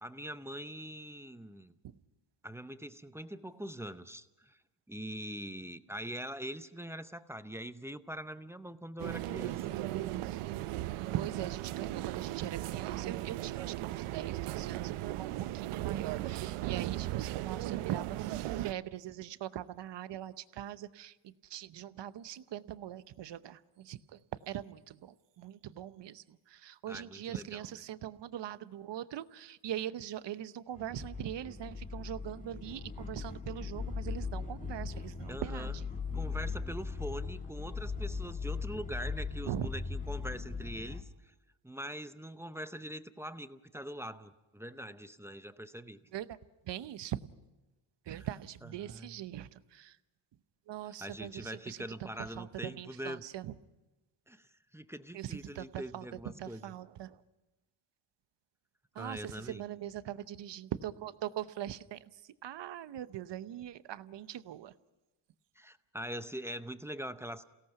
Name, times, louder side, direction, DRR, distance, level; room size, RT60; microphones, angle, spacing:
voice 1, 0.0-1.7 2.4-4.6 4.9-9.8 26.9-27.8 35.3-35.8 36.1-41.3 41.6-46.0 48.1-48.3 48.6-49.2 50.8-53.2 54.3-56.7 59.0-59.6 65.6-67.4, equal, 5° right, 11 dB, 0.7 m, -43 dB
sound 1, 9.0-18.7, right 15 dB, 80° right, 0.7 m, -37 dB
voice 2, 11.1-24.0 24.5-26.2 26.5-35.7 39.5-39.7 46.1-46.2 46.7-47.2 48.1-49.9 50.7-51.8 52.4-53.5 55.1-56.0 56.4-57.1 59.0-59.2 59.5-62.0 62.4-64.7, right 11 dB, 55° right, 14 dB, 0.9 m, -41 dB
sound 2, 30.7-41.0, left 4 dB, 15° left, 1.5 m, -39 dB
28.5 x 17.5 x 5.9 m, 1.1 s
cardioid pair, 110°, 50 cm